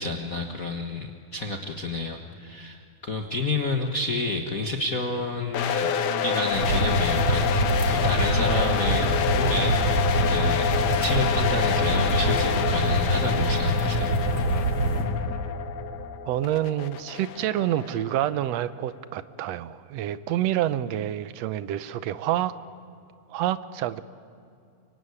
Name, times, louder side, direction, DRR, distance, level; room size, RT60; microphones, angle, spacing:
voice 1, 0.0-6.0 6.2-10.7 11.0-14.2, left 2 dB, 55° left, 3 dB, 0.9 m, -30 dB
sound 1, 5.5-18.4, left 7 dB, 75° left, 2.7 m, -27 dB
sound 2, 6.5-15.0, right 1 dB, 45° right, 3.6 m, -25 dB
voice 2, 16.2-22.5 23.3-24.0, right 12 dB, 75° right, 14 dB, 1.6 m, -27 dB
24.5 x 24.0 x 9.7 m, 2.4 s
omnidirectional pair, 3.7 m